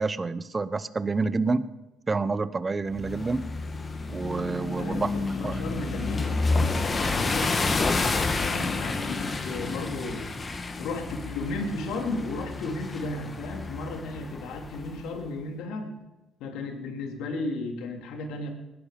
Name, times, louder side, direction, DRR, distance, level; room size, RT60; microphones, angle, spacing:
voice 1, 0.0-1.6 2.1-3.4 4.1-5.6, right 3 dB, 30° right, 15 dB, 0.9 m, -28 dB
sound 1, 2.9-15.1, left 3 dB, 30° left, 1.9 m, -30 dB
voice 2, 4.7-10.3 10.8-16.0 16.4-18.5, left 2 dB, 75° left, 3 dB, 2.8 m, -34 dB
19.5 x 11.5 x 5.2 m, 0.99 s
supercardioid pair, 70°, 0 cm